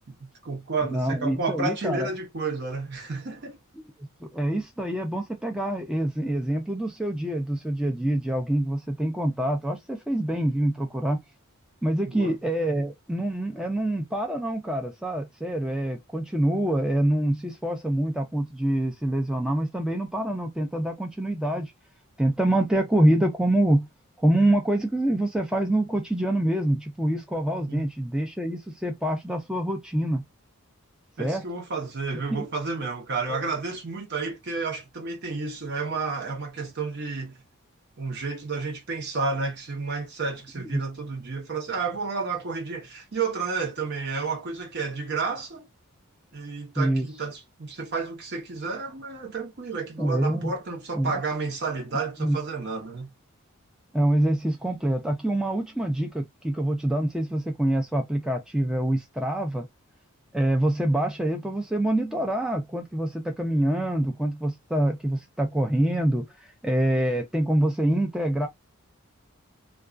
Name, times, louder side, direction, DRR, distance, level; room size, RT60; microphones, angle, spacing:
voice 1, 0.2-3.6 12.1-12.3 27.7-27.9 31.2-37.3 38.0-45.7 46.3-53.1, right 4 dB, 55° right, 0.8 m, -31 dB
voice 2, 0.8-2.1 4.2-11.2 11.8-21.7 22.2-23.9 24.2-30.2 31.2-31.4 32.3-32.5 33.3-33.4 40.6-40.8 46.8-47.1 50.0-50.5 50.9-51.1 52.2-52.4 53.9-59.7 60.3-66.3 66.6-68.5, right 1 dB, 5° right, 0.4 m, -25 dB
2.3 x 2.3 x 2.4 m
head